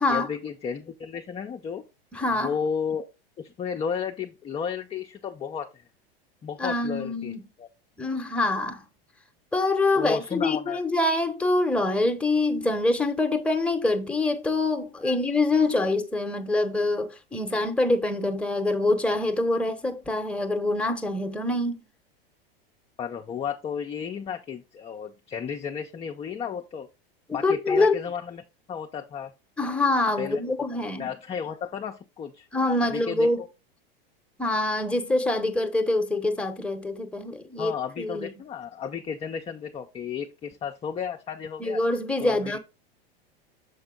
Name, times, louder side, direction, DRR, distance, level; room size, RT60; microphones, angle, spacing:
voice 1, 0.1-1.8 2.4-3.1 3.4-5.8 6.4-7.7 9.9-10.8 15.0-15.2 23.0-26.9 27.3-28.4 28.7-29.3 30.2-30.4 30.7-32.5 32.8-33.5 37.6-41.8 42.2-42.6, left 7 dB, 20° left, 0.6 m, -33 dB
voice 2, 2.1-2.5 6.6-7.4 8.0-8.8 9.5-21.8 27.3-28.0 29.6-31.1 32.5-33.4 34.4-38.3 41.6-42.6, left 2 dB, 5° left, 0.9 m, -25 dB
7.0 x 4.3 x 3.7 m
hypercardioid pair, 95°, 30 cm